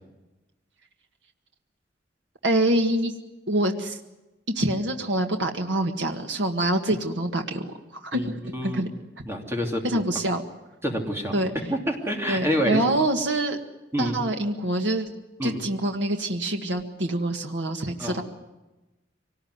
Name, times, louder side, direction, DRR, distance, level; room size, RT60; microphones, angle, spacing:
voice 1, 2.4-3.1 3.5-4.0 4.5-8.9 9.8-10.4 11.3-11.5 12.3-13.6 14.0-18.2, right 1 dB, 75° right, 4 dB, 1.7 m, -26 dB
voice 2, 8.1-8.9 9.3-9.8 10.8-11.3 11.7-12.8 13.9-14.2 15.4-15.6 18.0-18.2, equal, 15° right, 1 dB, 2.8 m, -27 dB
24.5 x 19.0 x 9.5 m, 1.1 s
head